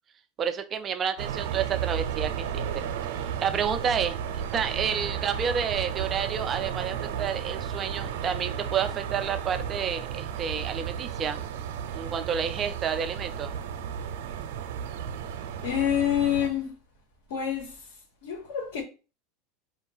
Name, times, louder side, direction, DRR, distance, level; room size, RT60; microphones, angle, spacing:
voice 1, 0.4-2.8 3.4-11.4 11.9-13.5, right 7 dB, 20° right, 0.4 m, -30 dB
sound 1, 1.2-16.5, right 8 dB, 80° right, 0.6 m, -33 dB
voice 2, 15.6-16.7 17.3-17.9 18.2-18.8, left 10 dB, 85° left, 1.3 m, -27 dB
4.5 x 2.6 x 3.9 m
supercardioid pair, 165°, 0 cm